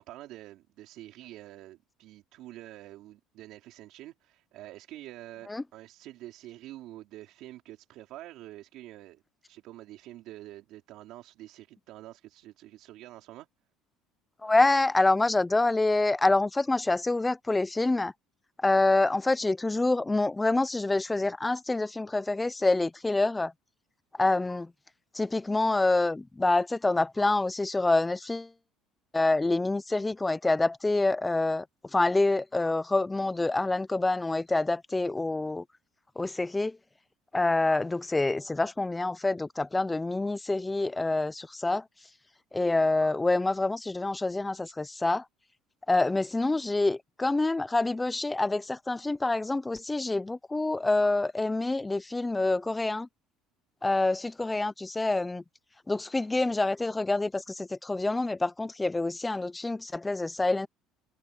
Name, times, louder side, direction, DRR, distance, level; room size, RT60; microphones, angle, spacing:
voice 1, 0.0-9.2 9.5-13.5, right 15 dB, 60° right, 4.3 m, -47 dB
voice 2, 14.4-18.1 18.6-23.5 24.2-24.7 25.1-28.5 29.1-31.7 31.9-35.6 36.2-36.8 37.3-41.8 42.5-45.2 45.9-53.1 53.8-55.4 55.9-60.7, left 2 dB, 10° left, 0.5 m, -26 dB
cardioid pair, 145°, 0 cm